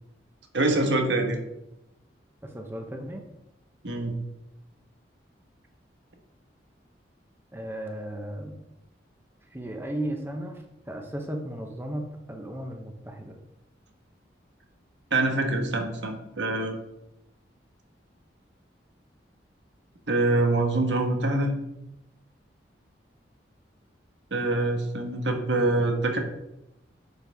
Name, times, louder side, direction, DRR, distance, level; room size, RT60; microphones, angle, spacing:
voice 1, 0.5-1.4 3.8-4.1 15.1-16.8 20.1-21.5 24.3-26.2, right 2 dB, 80° right, 4 dB, 1.4 m, -25 dB
voice 2, 2.4-3.2 7.5-8.6 9.5-13.4, right 1 dB, 15° right, 3 dB, 0.9 m, -35 dB
9.8 x 6.8 x 3.6 m, 0.88 s
head